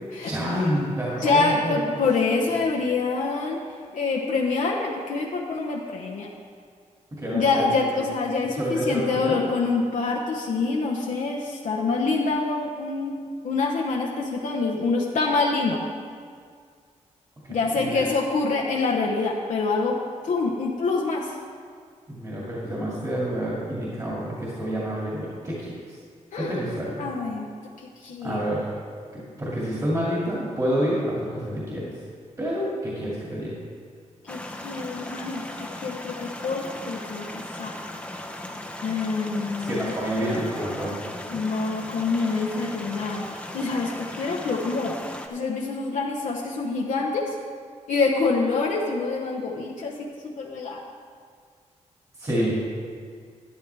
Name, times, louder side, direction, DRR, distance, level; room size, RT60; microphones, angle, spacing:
voice 1, 0.2-1.9 7.2-7.8 8.5-9.4 17.4-18.1 22.1-26.0 26.4-27.0 28.2-28.7 29.1-31.8 32.4-33.5 39.7-40.9 52.2-52.5, equal, 25° right, -6 dB, 2.3 m, -28 dB
voice 2, 1.2-3.6 3.9-6.3 7.3-13.2 13.4-15.8 17.5-20.0 20.2-21.4 26.3-26.6 27.0-27.5 28.0-28.4 34.2-35.5 35.8-37.8 38.8-39.9 41.3-44.9 45.3-47.4 47.9-50.8, left 4 dB, 80° left, -1 dB, 0.9 m, -26 dB
sound 1, 34.3-45.3, left 1 dB, 10° left, 0.7 m, -37 dB
12.5 x 10.0 x 3.4 m, 2.1 s
wide cardioid pair, 130°, 13 cm